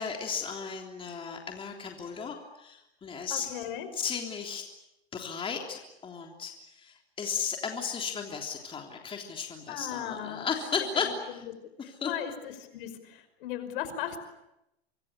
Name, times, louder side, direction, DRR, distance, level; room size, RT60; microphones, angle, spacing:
voice 1, 0.0-3.5 3.9-4.6 5.1-6.5 6.8-11.4 11.8-12.1, left 6 dB, 15° left, 2 dB, 3.4 m, -35 dB
voice 2, 3.3-3.9 9.7-10.5 11.0-11.4 12.0-14.2, left 10 dB, 60° left, 10 dB, 5.4 m, -37 dB
25.5 x 22.5 x 9.9 m, 0.88 s
hypercardioid pair, 135°, 31 cm